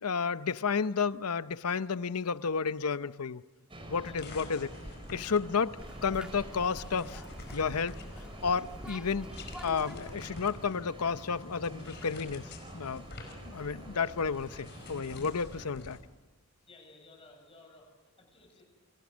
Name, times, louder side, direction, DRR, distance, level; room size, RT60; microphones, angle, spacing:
voice 1, 0.0-3.4 3.9-4.7 5.1-5.8 6.0-7.2 7.5-8.0 8.4-9.3 9.6-13.0 13.4-16.0, left 5 dB, 85° left, 0.7 m, -31 dB
sound 1, 3.7-15.7, right 1 dB, 25° right, 4.6 m, -48 dB
voice 2, 3.9-4.3 16.7-18.6, left 2 dB, 25° left, 7.1 m, -57 dB
sound 2, 4.2-16.0, left 2 dB, 50° left, 5.0 m, -50 dB
sound 3, 5.8-10.6, equal, 5° right, 1.5 m, -46 dB
29.5 x 26.0 x 6.3 m
head